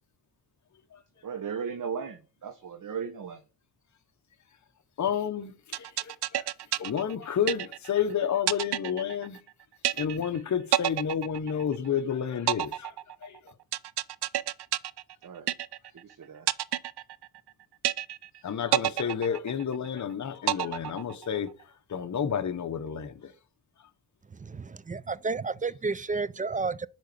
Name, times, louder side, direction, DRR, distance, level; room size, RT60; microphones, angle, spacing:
voice 1, 1.2-3.4 15.2-15.5 16.0-16.5, right 6 dB, 50° right, 1.2 m, -36 dB
voice 2, 5.0-6.4 6.8-9.4 9.9-13.0 13.2-13.5 18.4-23.3, left 8 dB, 45° left, 1.0 m, -30 dB
sound 1, 5.7-8.0 8.5-9.5 9.8-10.4 10.7-12.0 12.5-16.0 16.5-17.5 17.8-18.4 18.7-20.0 20.5-21.5, right 13 dB, 75° right, 0.6 m, -29 dB
voice 3, 24.3-26.9, right 4 dB, 20° right, 0.4 m, -31 dB
6.3 x 5.1 x 6.8 m
cardioid pair, 75°, 40 cm